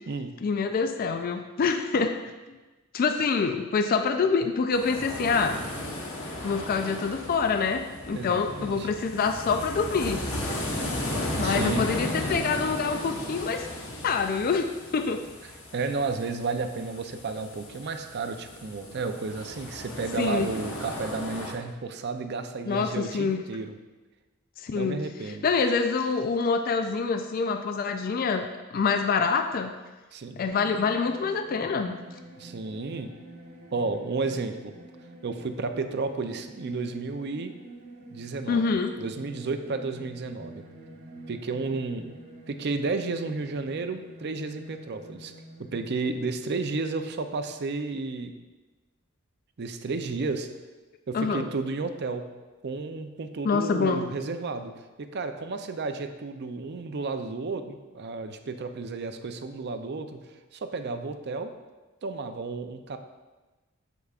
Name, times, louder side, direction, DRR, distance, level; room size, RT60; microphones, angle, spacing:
voice 1, 0.4-2.2 2.9-5.6 6.4-10.2 11.4-13.7 14.0-15.2 20.2-20.5 22.7-23.4 24.6-25.0 25.4-29.7 30.4-32.0 38.5-39.0 51.1-51.5 53.4-54.1, left 5 dB, 40° left, 7 dB, 0.3 m, -26 dB
sound 1, 4.7-21.5, left 1 dB, 75° left, 1.2 m, -35 dB
voice 2, 8.1-8.9 11.4-11.9 15.7-23.8 24.7-25.5 30.1-30.4 32.4-33.1 33.7-34.7 35.2-37.5 38.1-38.6 39.0-40.6 41.3-42.2 42.5-45.3 45.6-48.3 49.6-50.5 51.1-52.2 52.6-54.7 55.0-60.2 60.5-61.5 62.0-63.0, right 3 dB, 50° right, 8 dB, 0.5 m, -32 dB
sound 2, 30.4-47.5, right 1 dB, 90° right, 1.4 m, -47 dB
8.2 x 6.9 x 2.4 m, 1.2 s
head